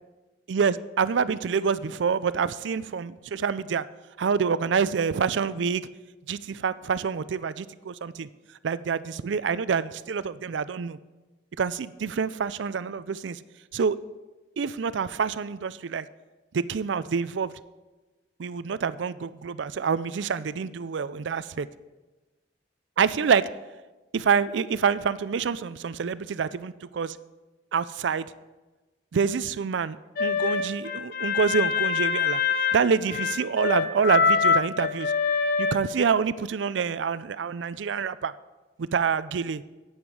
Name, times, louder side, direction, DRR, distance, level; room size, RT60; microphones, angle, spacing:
voice 1, 0.5-3.9 4.2-5.8 6.3-8.3 8.6-11.0 11.6-13.4 13.7-14.0 14.6-16.1 16.5-17.5 18.4-21.7 23.0-23.4 24.1-27.2 27.7-28.3 29.1-32.4 32.7-35.1 35.6-38.3 38.8-39.6, right 6 dB, 75° right, 16 dB, 0.4 m, -27 dB
sound 1, 30.2-35.7, left 5 dB, 55° left, 0.7 m, -24 dB
11.0 x 8.9 x 4.8 m, 1.2 s
head